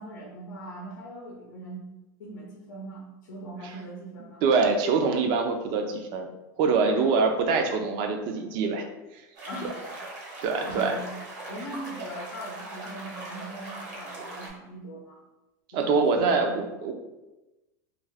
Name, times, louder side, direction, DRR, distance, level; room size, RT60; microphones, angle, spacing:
voice 1, 0.0-1.8 2.2-4.4 6.9-7.2 9.4-9.8 10.3-11.2 11.5-15.2 15.7-16.7, right 1 dB, 90° left, -2 dB, 0.6 m, -41 dB
voice 2, 4.4-6.3 6.6-8.9 9.1-9.2 9.6-9.7 10.4-11.0 15.7-16.5 16.8-16.9, right 4 dB, 50° right, 5 dB, 0.4 m, -24 dB
sound 1, 9.4-14.5, right 2 dB, 70° right, 1.2 m, -40 dB
2.4 x 2.3 x 3.3 m, 1.0 s
supercardioid pair, 125°, 10 cm